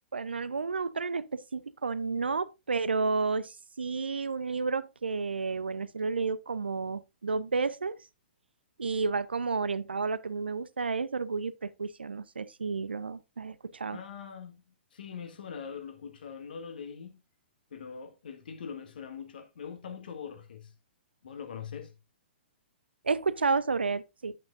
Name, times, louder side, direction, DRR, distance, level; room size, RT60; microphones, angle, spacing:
voice 1, 0.1-7.9 8.8-14.0 23.0-24.4, right 4 dB, 70° right, 0.6 m, -31 dB
voice 2, 13.9-14.6 14.9-17.2 17.7-20.7 21.2-22.0, left 6 dB, 55° left, 1.7 m, -42 dB
9.5 x 8.4 x 2.6 m
figure-of-eight pair, 115°, 6 cm